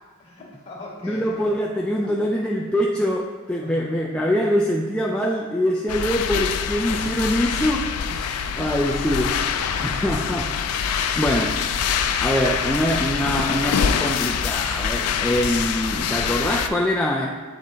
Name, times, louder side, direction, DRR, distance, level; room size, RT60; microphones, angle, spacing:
voice 1, 0.0-1.3 3.6-3.8, left 2 dB, 30° left, -4 dB, 1.8 m, -41 dB
voice 2, 1.0-9.4 9.8-17.3, equal, 5° left, -2 dB, 0.3 m, -24 dB
sound 1, 5.9-16.7, left 7 dB, 80° left, 0.4 m, -25 dB
7.4 x 3.9 x 3.9 m, 1.4 s
head